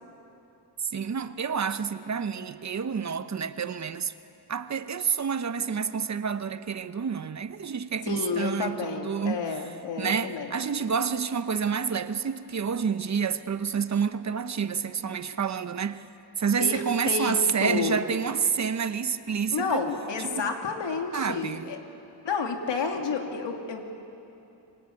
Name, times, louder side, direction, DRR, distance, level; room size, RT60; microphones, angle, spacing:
voice 1, 0.9-4.1 4.5-9.4 10.0-16.1 16.4-19.8 20.2-20.5 21.1-21.7, right 6 dB, 40° right, 0.9 m, -29 dB
voice 2, 8.1-10.5 16.6-18.0 19.5-21.8 22.2-24.0, left 5 dB, 90° left, 2.8 m, -30 dB
25.5 x 23.5 x 9.7 m
wide cardioid pair, 155°, 41 cm